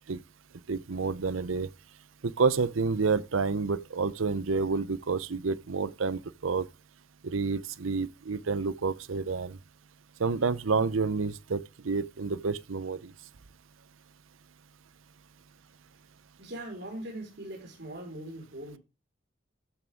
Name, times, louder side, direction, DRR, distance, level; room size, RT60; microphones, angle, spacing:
voice 1, 0.7-1.7 2.2-6.7 7.2-9.6 10.2-13.1, right 4 dB, 85° right, 0.7 m, -29 dB
voice 2, 16.4-18.8, right 1 dB, 55° right, 4.9 m, -41 dB
14.0 x 6.2 x 3.5 m
head